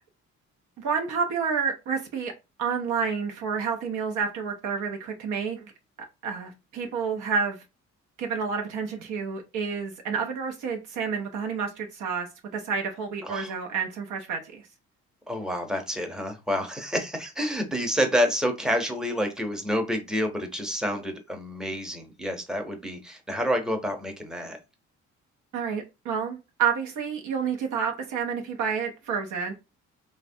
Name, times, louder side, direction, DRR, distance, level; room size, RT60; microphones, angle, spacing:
voice 1, 0.8-2.3 2.6-5.7 6.2-7.6 8.2-12.3 12.5-14.6 25.5-29.5, right 6 dB, 80° right, 0.6 m, -29 dB
voice 2, 15.3-24.6, equal, ahead, 0.7 m, -28 dB
3.2 x 2.1 x 2.6 m
cardioid pair, 90°, 30 cm